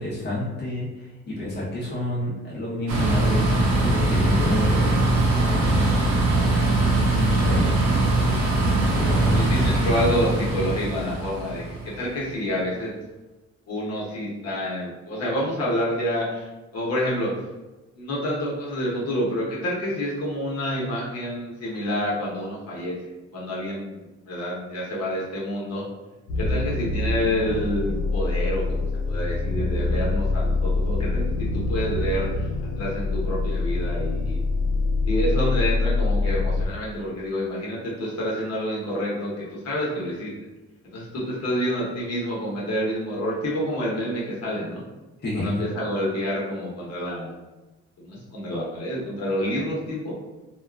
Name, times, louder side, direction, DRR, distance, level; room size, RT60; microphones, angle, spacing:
voice 1, 0.0-6.1 7.2-7.9 8.9-9.4 45.2-45.6, left 1 dB, 35° left, -7 dB, 0.8 m, -30 dB
sound 1, 2.9-12.1, right 2 dB, 75° right, 0.7 m, -21 dB
voice 2, 9.0-12.9 13.7-17.4 18.0-23.0 23.3-25.8 26.4-32.5 32.8-34.4 35.0-40.3 40.8-44.8 45.3-47.3 48.0-50.1, equal, 55° left, -5 dB, 1.0 m, -28 dB
sound 2, 26.3-36.7, left 3 dB, 75° left, 0.5 m, -25 dB
2.7 x 2.4 x 2.3 m, 1.1 s
cardioid pair, 90°, 30 cm